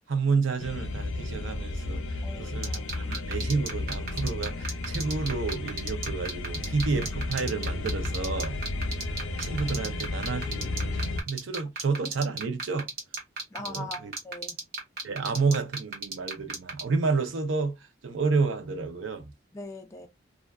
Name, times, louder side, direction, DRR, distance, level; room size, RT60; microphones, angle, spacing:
voice 1, 0.1-8.5 9.4-11.0 11.3-12.9 13.6-14.1 15.0-17.8 18.0-19.3, right 4 dB, 75° right, 0.5 m, -30 dB
sound 1, 0.6-11.2, left 2 dB, 80° left, 0.5 m, -33 dB
voice 2, 2.2-2.9 13.5-14.6 19.5-20.1, left 2 dB, 15° left, 0.3 m, -41 dB
sound 2, 2.6-16.8, right 3 dB, 50° right, 0.9 m, -33 dB
2.4 x 2.3 x 2.2 m
head